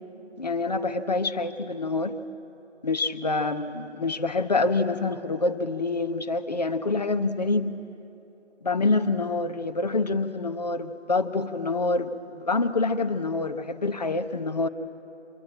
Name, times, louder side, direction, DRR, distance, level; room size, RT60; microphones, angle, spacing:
voice 1, 0.4-2.2 2.8-7.7 8.6-14.7, left 3 dB, 35° left, 9 dB, 1.0 m, -26 dB
26.0 x 22.0 x 8.7 m, 3.0 s
figure-of-eight pair, 160°, 36 cm